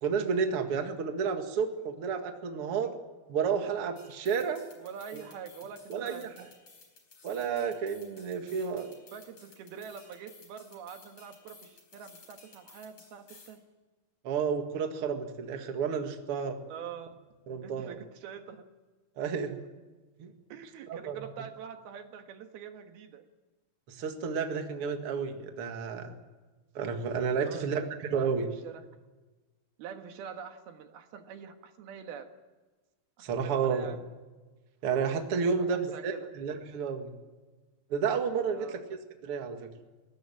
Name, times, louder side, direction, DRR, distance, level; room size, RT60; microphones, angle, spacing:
voice 1, 0.0-2.9 3.3-4.6 5.1-5.2 5.9-6.3 7.2-8.9 14.2-16.6 17.5-18.0 19.2-19.6 20.2-20.3 20.9-21.2 23.9-26.2 26.7-28.5 33.2-33.9 34.8-37.1 37.9-38.8 39.2-39.7, right 6 dB, 45° right, 5 dB, 2.3 m, -31 dB
sound 1, 4.0-13.6, left 4 dB, 40° left, 5.0 m, -56 dB
voice 2, 4.8-6.3 9.1-13.6 16.7-17.2 17.6-18.7 20.5-23.2 27.4-28.3 28.6-28.9 29.8-32.3 33.3-34.2 35.5-36.3 38.5-38.8, right 7 dB, 85° right, 6 dB, 3.4 m, -45 dB
21.0 x 17.5 x 8.8 m, 1.3 s
omnidirectional pair, 4.3 m